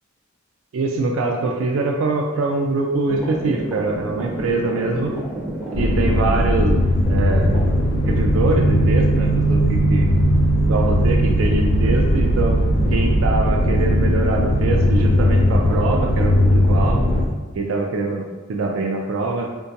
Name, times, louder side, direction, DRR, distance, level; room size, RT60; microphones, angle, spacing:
voice 1, 0.7-5.1 5.8-7.6 8.1-10.1 10.7-12.6 12.9-17.1 17.6-18.2 18.5-19.5, right 3 dB, 75° right, 1 dB, 0.3 m, -23 dB
sound 1, 3.1-17.2, right 1 dB, 5° right, 0.5 m, -31 dB
sound 2, 5.7-17.3, equal, 60° left, 0.5 m, -18 dB
3.7 x 2.3 x 2.7 m, 1.2 s
head